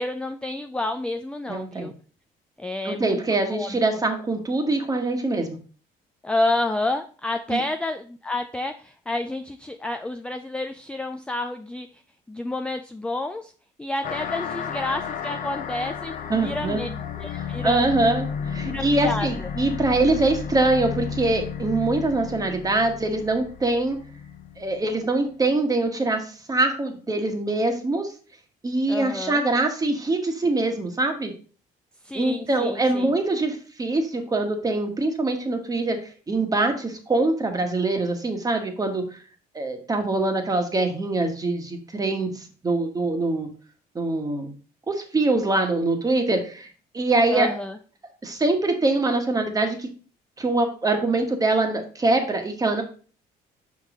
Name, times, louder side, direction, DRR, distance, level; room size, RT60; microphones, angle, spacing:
voice 1, 0.0-1.9 2.6-3.8 6.2-11.9 12.3-13.5 13.8-16.9 17.2-17.9 18.6-19.5 28.9-29.5 32.0-33.1 47.3-47.8, left 2 dB, 5° left, 7 dB, 0.4 m, -29 dB
voice 2, 1.5-1.9 2.8-5.6 7.5-7.6 16.3-16.9 17.4-24.0 24.6-28.1 28.6-31.3 32.1-39.2 39.5-43.5 43.9-44.5 44.9-46.7 46.9-47.5 48.2-49.9 50.4-52.8, right 2 dB, 20° right, 5 dB, 1.3 m, -24 dB
sound 1, 14.0-25.0, left 7 dB, 50° left, 0.8 m, -33 dB
5.6 x 5.3 x 3.7 m, 0.40 s
cardioid pair, 110°, 17 cm